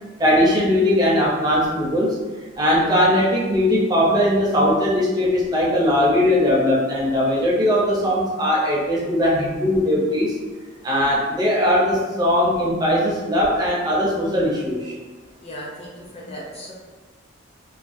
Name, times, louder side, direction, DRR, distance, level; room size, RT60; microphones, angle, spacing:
voice 1, 0.2-2.2 2.6-10.3 10.8-14.9, left 1 dB, 20° right, -5 dB, 0.5 m, -19 dB
voice 2, 15.4-16.7, equal, 35° left, -3 dB, 0.5 m, -36 dB
2.4 x 2.2 x 2.5 m, 1.3 s
head